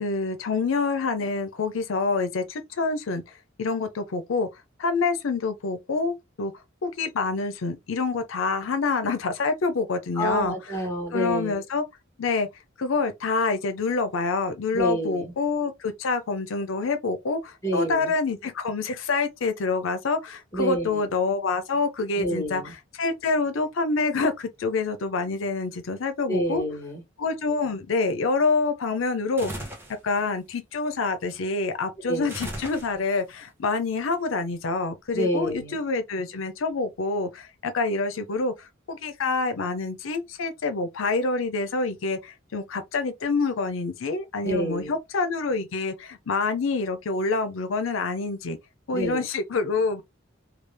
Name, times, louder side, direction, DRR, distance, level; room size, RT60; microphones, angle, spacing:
voice 1, 0.0-4.5 4.8-6.5 6.8-10.6 11.1-11.8 12.2-12.5 12.8-26.6 27.2-29.7 30.0-48.6 48.9-50.0, left 4 dB, 85° left, 0.5 m, -27 dB
voice 2, 10.1-11.6 14.7-15.3 17.6-18.1 20.5-21.1 22.1-22.7 26.3-27.0 32.1-32.3 35.1-35.8 44.4-44.9 48.9-49.2, equal, 15° left, 1.3 m, -28 dB
sound 1, 29.4-30.0 32.3-33.2, right 1 dB, 10° right, 0.8 m, -36 dB
3.2 x 2.3 x 3.3 m
head